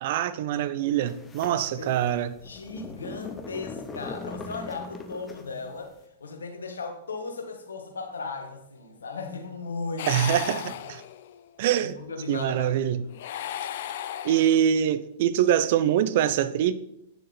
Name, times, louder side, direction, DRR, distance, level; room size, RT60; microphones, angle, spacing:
voice 1, 0.0-2.4 10.1-11.0 11.6-12.0 12.3-13.0 14.2-16.7, right 10 dB, 55° right, 0.6 m, -24 dB
sound 1, 1.1-5.7, left 4 dB, 20° left, 1.0 m, -40 dB
voice 2, 1.4-1.9 2.4-5.9 6.2-10.3 10.6-10.7 11.8-13.2, left 4 dB, 80° left, 1.5 m, -37 dB
sound 2, 10.0-11.4 13.1-14.9, left 10 dB, 60° left, 0.6 m, -35 dB
9.1 x 6.9 x 4.1 m
hypercardioid pair, 105°, 0 cm